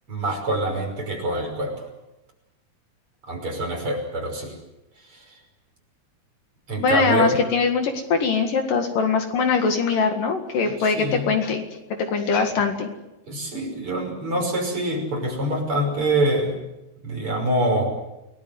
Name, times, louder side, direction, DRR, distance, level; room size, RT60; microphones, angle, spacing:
voice 1, 0.1-1.8 3.3-4.5 5.1-5.2 6.7-7.3 10.8-11.3 13.3-16.6 17.0-17.9, right 1 dB, 35° right, 1 dB, 6.6 m, -25 dB
voice 2, 6.8-11.6 12.1-12.9, left 5 dB, 65° left, 5 dB, 3.5 m, -22 dB
29.5 x 19.5 x 7.9 m, 0.96 s
omnidirectional pair, 4.4 m